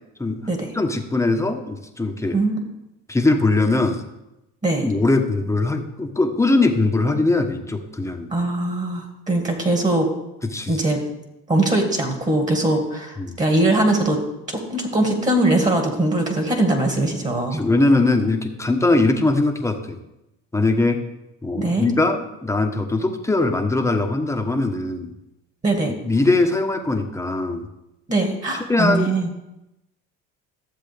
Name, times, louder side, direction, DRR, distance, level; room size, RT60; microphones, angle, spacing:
voice 1, 0.7-2.4 3.1-4.0 4.8-8.3 10.5-10.8 13.2-13.3 17.5-20.0 20.5-21.0 21.4-25.1 26.0-27.6 28.7-29.1, left 2 dB, 10° left, 4 dB, 1.2 m, -21 dB
voice 2, 8.3-10.1 10.7-11.0 11.5-14.2 14.5-17.6 21.6-21.9 25.6-25.9 28.1-29.3, right 2 dB, 25° right, 3 dB, 2.1 m, -21 dB
13.5 x 7.4 x 3.5 m, 0.92 s
supercardioid pair, 90°, 29 cm